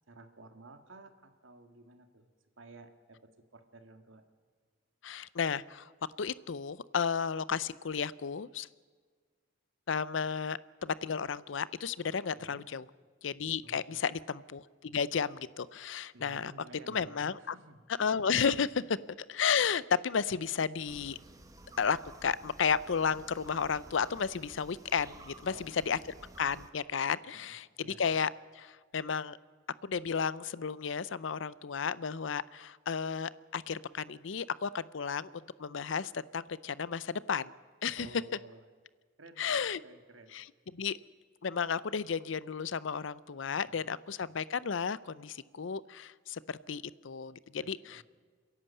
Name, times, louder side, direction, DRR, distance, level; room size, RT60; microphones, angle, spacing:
voice 1, 0.1-2.3 2.6-3.2 3.5-4.2 12.3-12.6 13.6-14.0 16.1-17.9 25.5-26.1 27.0-27.5 27.8-28.0 38.0-38.6 39.2-40.4 43.5-43.9 47.6-48.0, right 2 dB, 90° right, 7 dB, 1.8 m, -54 dB
voice 2, 5.0-5.9 6.2-8.7 9.9-12.8 13.2-16.5 16.9-17.5 18.0-19.0 19.3-21.2 21.8-26.0 26.4-29.4 29.8-35.3 35.6-37.5 37.8-38.1 39.4-39.8 40.3-40.4 40.7-41.0 41.4-48.0, left 6 dB, 80° left, 19 dB, 0.5 m, -33 dB
sound 1, 20.9-26.7, right 2 dB, 15° right, 1.2 m, -53 dB
30.0 x 11.0 x 8.4 m, 1.5 s
head